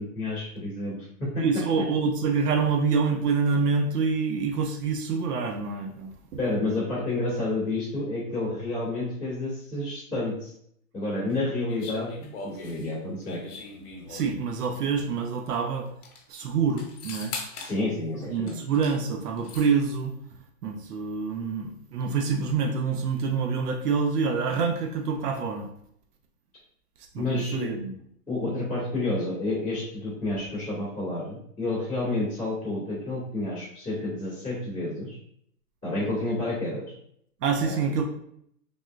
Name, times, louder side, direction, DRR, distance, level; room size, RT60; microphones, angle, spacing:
voice 1, 0.0-1.4 6.4-10.5 10.9-13.4 17.6-18.6 27.1-27.7 28.3-35.2 35.8-36.8 37.6-37.9, left 2 dB, 5° right, -25 dB, 0.4 m, -30 dB
voice 2, 1.4-6.1 14.1-15.9 16.3-17.4 18.3-25.7 27.1-27.9 37.4-38.0, right 5 dB, 80° right, 2 dB, 0.7 m, -26 dB
sound 1, 11.7-14.5 15.5-15.6 15.9-16.2 16.8-17.8 18.5-19.0 19.2-19.7, left 3 dB, 70° left, 1.0 m, -40 dB
3.5 x 2.3 x 2.4 m, 0.69 s
hypercardioid pair, 150°, 47 cm